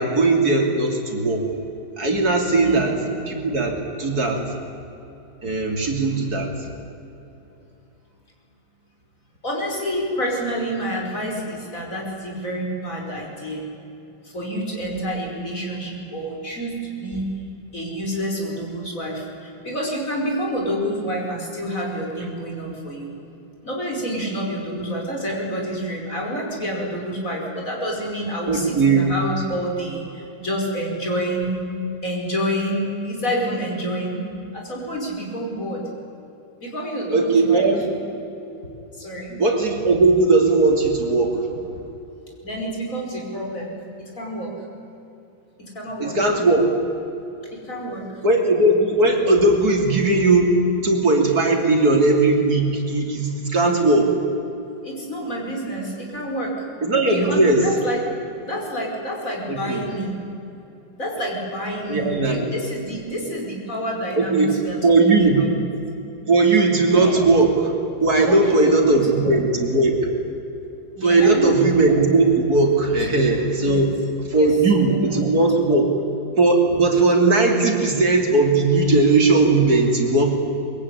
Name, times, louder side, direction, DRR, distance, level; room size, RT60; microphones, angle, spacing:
voice 1, 0.0-1.5 2.0-3.0 3.3-4.4 5.4-6.7 28.5-29.1 37.1-37.9 39.4-41.5 46.0-46.6 48.2-54.1 56.8-57.7 59.5-59.8 61.9-62.4 64.2-64.5 64.8-65.4 66.3-67.7 68.0-70.1 71.0-74.0 74.3-75.9 76.4-80.3, right 3 dB, 55° right, 2 dB, 3.5 m, -18 dB
voice 2, 9.4-13.7 14.2-17.3 17.7-23.1 23.6-31.6 32.0-34.3 34.5-35.8 36.6-37.7 38.9-39.4 42.4-44.5 45.6-46.2 47.5-48.1 54.8-56.5 57.0-58.0 58.4-60.1 61.0-65.3 66.9-67.2 68.3-68.6 68.9-69.4 71.0-71.6 73.6-73.8 74.4-74.5 74.9-75.2 75.8-75.9, equal, 45° left, -1 dB, 5.7 m, -28 dB
23.5 x 22.5 x 9.9 m, 2.9 s
omnidirectional pair, 2.0 m